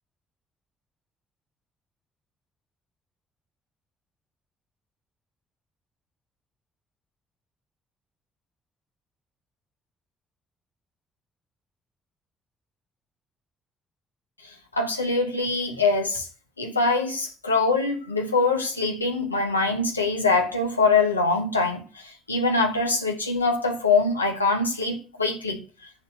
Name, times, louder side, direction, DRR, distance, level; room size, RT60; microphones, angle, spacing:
voice 1, 14.7-16.3 16.6-25.6, left 3 dB, 90° left, 1.4 m, -23 dB
10.5 x 6.6 x 9.1 m
figure-of-eight pair, 45°, 0 cm